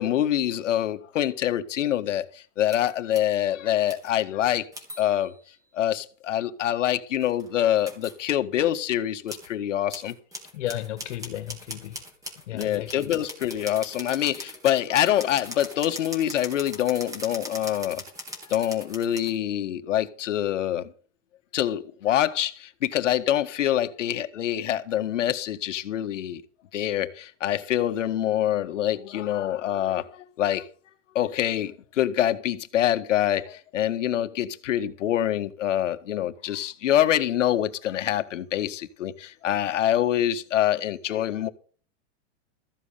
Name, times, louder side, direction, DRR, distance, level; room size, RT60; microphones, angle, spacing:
voice 1, 0.0-4.7 5.0-5.3 5.7-10.2 12.5-18.0 18.5-20.9 21.5-26.4 26.7-30.7 31.2-41.5, left 11 dB, 90° left, 1.8 m, -25 dB
sound 1, 2.7-3.4 3.8-4.1 4.7-5.4 7.1-8.2 9.3-9.5 9.9-19.3, equal, 10° right, 3.3 m, -40 dB
voice 2, 10.5-12.1 12.5-13.2, left 13 dB, 70° left, 2.0 m, -34 dB
14.5 x 7.7 x 6.7 m
supercardioid pair, 155°, 36 cm